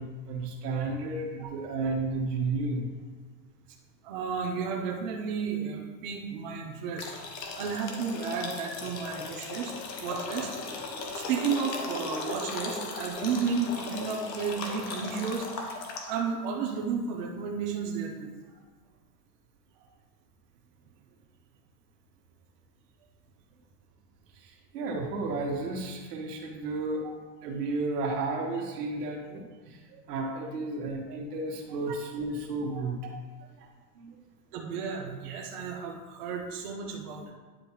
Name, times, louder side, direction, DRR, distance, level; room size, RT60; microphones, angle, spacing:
voice 1, 0.0-2.9 24.3-27.1 27.4-33.1 33.6-33.7 33.9-34.1, right 3 dB, 70° right, 1 dB, 1.6 m, -33 dB
voice 2, 4.0-7.1 7.5-10.8 11.1-18.3 31.1-31.2 32.7-32.8 34.5-37.3, right 5 dB, 30° right, -1 dB, 0.5 m, -33 dB
sound 1, 7.0-16.3, left 3 dB, 85° left, 1.5 m, -37 dB
10.0 x 5.1 x 3.1 m, 1.4 s
supercardioid pair, 165°, 49 cm